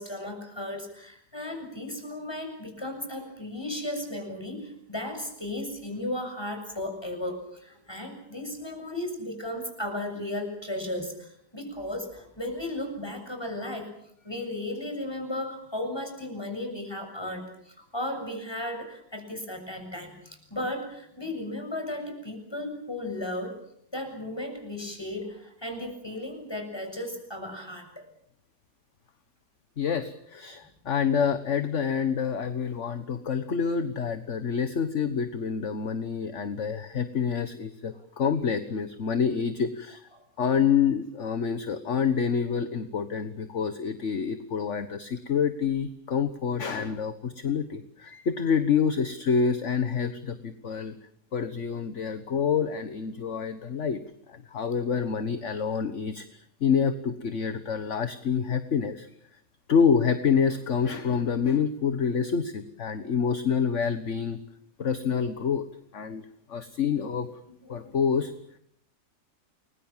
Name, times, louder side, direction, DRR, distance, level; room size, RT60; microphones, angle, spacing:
voice 1, 0.0-13.9 14.2-23.6 23.9-28.1 67.6-68.0, left 1 dB, 15° left, 5 dB, 7.2 m, -35 dB
voice 2, 29.8-40.1 40.4-51.0 51.3-54.0 54.3-59.1 59.7-64.4 64.8-65.6 65.9-67.3 67.7-68.3, left 6 dB, 45° left, 10 dB, 1.5 m, -27 dB
29.5 x 22.5 x 7.4 m, 0.70 s
omnidirectional pair, 1.8 m